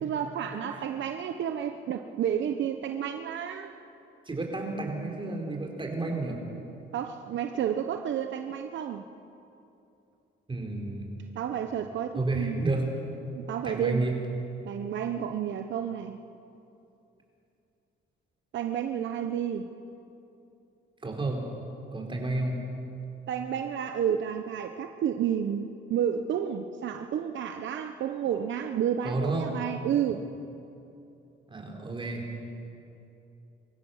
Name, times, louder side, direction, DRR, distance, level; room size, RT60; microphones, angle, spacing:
voice 1, 0.0-3.8 6.9-9.0 11.3-12.6 13.3-14.1 14.6-16.2 18.5-19.7 23.3-30.3, right 9 dB, 70° right, 7 dB, 0.9 m, -31 dB
voice 2, 4.3-6.4 10.5-11.1 12.1-12.9 13.6-14.2 21.0-21.4 21.9-22.5 29.0-29.5 31.5-32.3, right 2 dB, 25° right, 1 dB, 4.5 m, -31 dB
24.0 x 15.5 x 7.2 m, 2.8 s
cardioid pair, 90°, 20 cm